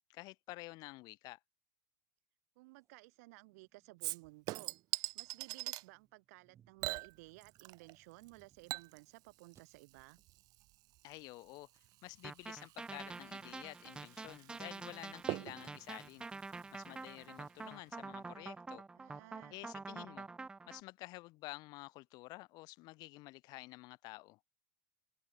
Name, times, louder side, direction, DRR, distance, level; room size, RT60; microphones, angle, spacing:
voice 1, 0.0-1.4 11.0-16.3 16.7-18.9 19.5-20.3 20.7-24.4, left 21 dB, 50° left, 0.5 m, -50 dB
voice 2, 2.6-4.7 5.1-10.2 19.0-19.6, right 24 dB, 70° right, 1.0 m, -57 dB
sound 1, 2.7-9.1 9.6-9.7 10.2-10.5 10.9-11.3 11.7-14.6 15.1-17.1, right 10 dB, 35° right, 7.2 m, -74 dB
Chink clink / Liquid, 4.0-5.9 6.8-8.0 8.2-17.3 17.6-17.7, right 19 dB, 50° right, 0.7 m, -45 dB
sound 2, 12.2-20.8, right 3 dB, 10° right, 0.3 m, -47 dB
supercardioid pair, 120°, 9 cm